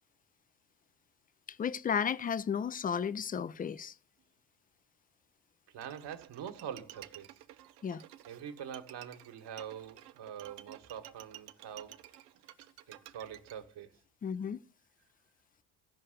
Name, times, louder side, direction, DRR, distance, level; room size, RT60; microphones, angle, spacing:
voice 1, 1.5-3.9 7.8-8.0 14.2-14.6, left 7 dB, 20° left, 0.5 m, -33 dB
voice 2, 5.7-7.4 8.3-12.0 12.9-13.9, right 8 dB, 55° right, 1.8 m, -44 dB
Bowed string instrument, 5.8-13.5, right 14 dB, 80° right, 0.8 m, -53 dB
14.5 x 5.4 x 6.7 m
hypercardioid pair, 65°, 49 cm